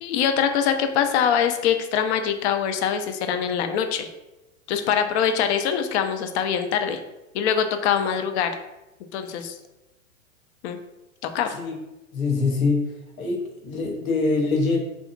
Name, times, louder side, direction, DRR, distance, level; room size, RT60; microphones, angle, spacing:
voice 1, 0.0-4.1 4.7-7.0 7.3-8.5 9.1-9.6 10.6-10.8 11.3-11.5, left 8 dB, 55° left, 7 dB, 0.5 m, -23 dB
voice 2, 12.1-12.9 13.2-14.8, left 3 dB, 85° left, 0 dB, 0.8 m, -24 dB
2.8 x 2.4 x 2.4 m, 0.97 s
hypercardioid pair, 105°, 41 cm